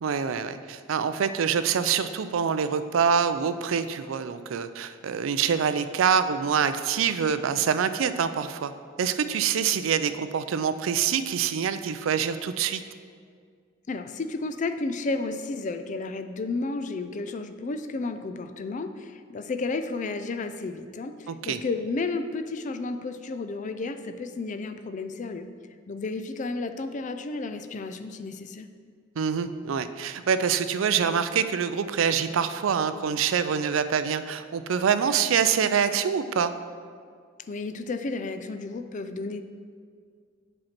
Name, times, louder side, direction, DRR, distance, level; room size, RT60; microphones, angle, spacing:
voice 1, 0.0-8.7 9.0-12.8 21.3-21.6 29.2-36.5, right 7 dB, 90° right, 11 dB, 0.4 m, -25 dB
voice 2, 13.9-25.5 25.9-28.7 37.5-39.4, left 3 dB, 40° left, 9 dB, 0.4 m, -32 dB
7.7 x 4.4 x 5.8 m, 2.1 s
head